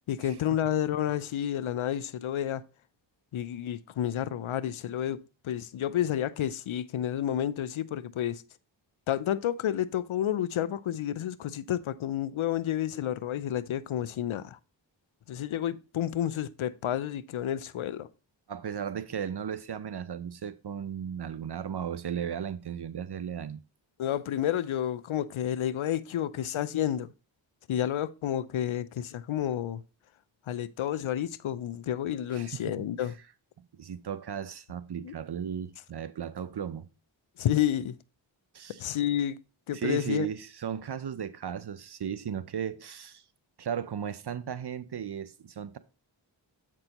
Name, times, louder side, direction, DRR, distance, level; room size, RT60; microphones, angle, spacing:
voice 1, 0.1-2.6 3.3-8.4 9.1-14.6 15.3-18.1 24.0-27.1 27.7-29.8 30.5-33.1 35.0-35.1 37.4-38.0 38.8-39.4 39.7-40.3, left 11 dB, 80° left, 0.6 m, -30 dB
voice 2, 18.5-23.6 32.3-32.5 33.0-33.1 33.8-36.9 38.5-38.8 39.7-43.2 43.6-45.8, right 8 dB, 55° right, 0.6 m, -35 dB
7.7 x 6.1 x 2.9 m
cardioid pair, 40°, 48 cm